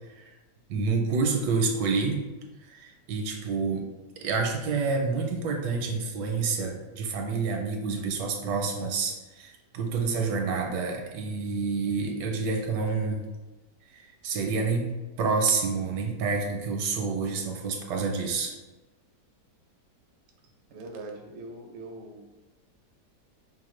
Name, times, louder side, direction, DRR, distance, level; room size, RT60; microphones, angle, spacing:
voice 1, 0.7-2.2 2.7-3.9 4.2-13.2 13.9-14.9 15.2-18.5, right 4 dB, 85° right, 2 dB, 1.3 m, -28 dB
voice 2, 20.7-22.3, right 2 dB, 65° right, 2 dB, 0.6 m, -41 dB
5.3 x 2.1 x 3.1 m, 1.1 s
omnidirectional pair, 1.8 m